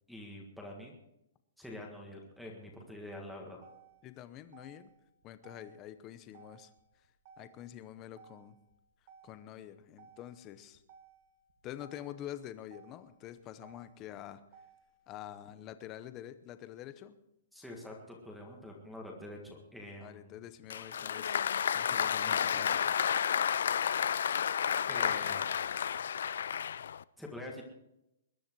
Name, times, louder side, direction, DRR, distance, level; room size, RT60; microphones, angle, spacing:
voice 1, 0.1-0.9 1.6-3.6 17.5-20.4 24.9-25.6 27.2-27.6, left 1 dB, ahead, -3 dB, 1.7 m, -46 dB
Motor vehicle (road), 3.6-15.2, right 7 dB, 35° right, 1.7 m, -61 dB
voice 2, 4.0-4.9 5.2-6.7 7.4-8.6 9.2-10.8 11.6-14.4 15.1-17.2 20.0-23.0, left 11 dB, 20° left, 12 dB, 0.8 m, -47 dB
Applause, 20.7-27.0, left 8 dB, 65° left, 0.5 m, -31 dB
21.0 x 10.5 x 4.6 m, 0.84 s
hypercardioid pair, 175°, 0 cm